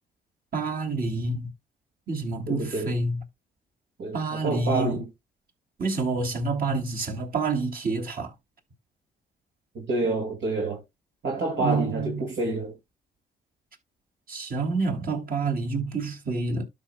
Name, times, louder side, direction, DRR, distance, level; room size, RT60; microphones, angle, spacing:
voice 1, 0.5-1.5 2.1-3.2 4.1-5.0 5.8-8.3 11.6-12.3 14.3-16.6, right 3 dB, 45° right, 3.0 m, -28 dB
voice 2, 2.5-2.9 4.0-5.1 9.7-10.8 11.2-12.7, right 2 dB, 65° right, 2.2 m, -28 dB
12.5 x 6.0 x 2.2 m
supercardioid pair, 60°, 20 cm